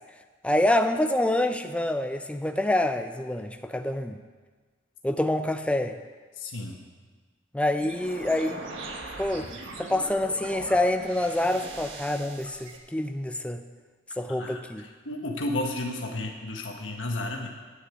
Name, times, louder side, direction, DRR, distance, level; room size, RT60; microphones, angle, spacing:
voice 1, 0.4-4.2 5.0-5.9 7.5-8.6 9.2-9.5 9.8-13.6 14.2-14.9, left 1 dB, 5° left, 8 dB, 0.5 m, -26 dB
voice 2, 6.4-6.8 14.4-14.6 15.0-17.5, left 1 dB, 75° left, 2 dB, 1.5 m, -32 dB
sound 1, 7.8-12.8, right 2 dB, 80° right, 1.4 m, -40 dB
9.7 x 6.5 x 8.3 m, 1.4 s
head